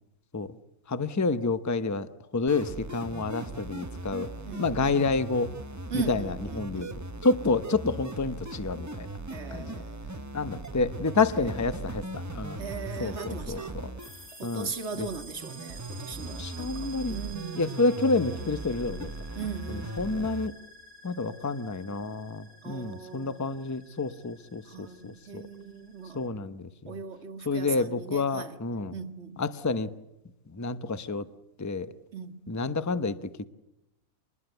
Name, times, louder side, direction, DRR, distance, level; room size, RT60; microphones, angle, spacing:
voice 1, 0.9-2.1 2.3-4.3 4.6-5.5 5.9-6.9 7.2-9.1 9.5-9.8 10.3-12.6 13.0-13.9 14.4-14.7 15.0-15.1 16.3-17.2 17.5-19.1 19.7-20.6 21.0-25.4 26.1-27.0 27.5-28.9 29.4-29.9 30.5-31.3 31.6-31.9 32.5-33.5, left 3 dB, 15° left, 0.7 m, -29 dB
sound 1, 2.5-20.5, right 2 dB, 15° right, 0.8 m, -39 dB
voice 2, 4.5-5.0 5.9-7.0 9.3-10.5 12.6-13.8 14.4-17.8 19.4-20.3 22.6-23.4 24.7-26.3 26.9-28.6 28.9-29.4 32.1-32.6, right 5 dB, 50° right, 1.9 m, -40 dB
sound 2, 14.0-26.3, right 3 dB, 45° left, 5.6 m, -50 dB
26.0 x 21.0 x 8.0 m
omnidirectional pair, 1.5 m